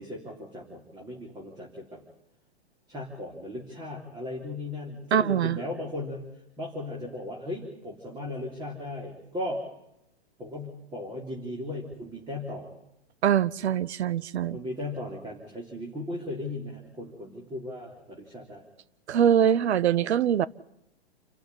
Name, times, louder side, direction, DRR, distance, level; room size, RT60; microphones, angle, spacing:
voice 1, 0.0-2.0 2.9-6.2 6.6-9.6 10.4-12.7 14.5-18.7, left 1 dB, 15° right, 3.5 m, -37 dB
voice 2, 5.1-5.6 13.2-14.6 19.1-20.5, right 9 dB, 80° right, 0.9 m, -23 dB
28.0 x 13.0 x 9.9 m
hypercardioid pair, 155°, 33 cm